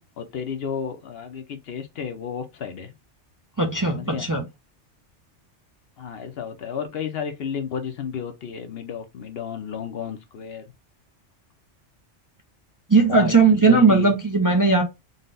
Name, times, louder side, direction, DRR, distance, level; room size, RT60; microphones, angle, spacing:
voice 1, 0.0-2.9 3.9-4.3 6.0-10.7 13.1-13.3 13.6-14.1, left 7 dB, 65° left, 0.8 m, -32 dB
voice 2, 3.6-4.4 12.9-14.8, right 4 dB, 30° right, 0.3 m, -18 dB
4.0 x 2.1 x 3.7 m
omnidirectional pair, 1.2 m